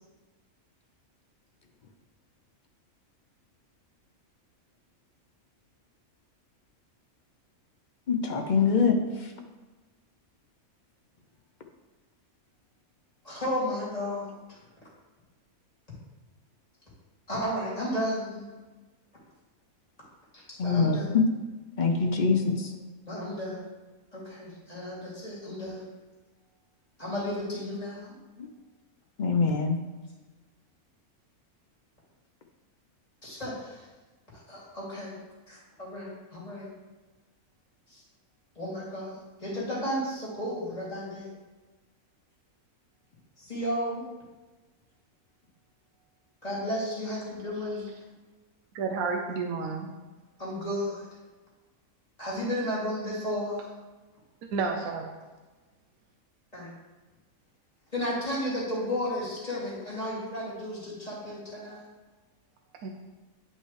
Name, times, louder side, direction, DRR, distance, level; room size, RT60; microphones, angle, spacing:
voice 1, 8.1-9.0 20.6-21.2 21.8-22.7 28.4-28.5 29.2-29.8, left 5 dB, 50° left, 4 dB, 0.5 m, -24 dB
voice 2, 13.2-14.3 17.3-18.5 20.3-21.1 22.1-22.3 23.1-23.8 24.1-25.8 27.0-28.1 33.2-33.8 34.5-35.2 35.5-36.7 37.9-38.0 38.6-41.3 43.4-44.1 46.4-47.9 50.4-51.0 52.2-53.7 56.5-56.7 57.9-61.8, equal, 25° left, -7 dB, 2.8 m, -33 dB
voice 3, 48.7-49.9 54.4-55.1 62.8-62.9, right 4 dB, 75° right, 2 dB, 1.1 m, -31 dB
9.9 x 5.5 x 3.2 m, 1.2 s
omnidirectional pair, 1.6 m